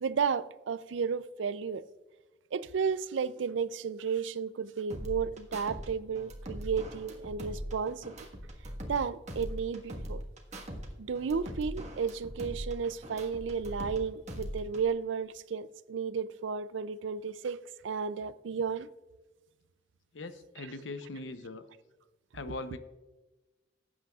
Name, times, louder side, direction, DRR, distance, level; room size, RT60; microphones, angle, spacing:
voice 1, 0.0-1.8 2.5-8.1 8.9-10.2 11.0-17.6 17.8-18.9, right 6 dB, 80° right, 0.4 m, -33 dB
sound 1, 4.9-5.9 6.1-9.0 9.3-10.9 11.1-14.0 14.3-14.9, equal, 40° right, 1.5 m, -41 dB
voice 2, 20.1-21.7 22.3-22.8, left 2 dB, 90° left, 0.8 m, -40 dB
18.5 x 8.5 x 2.4 m
head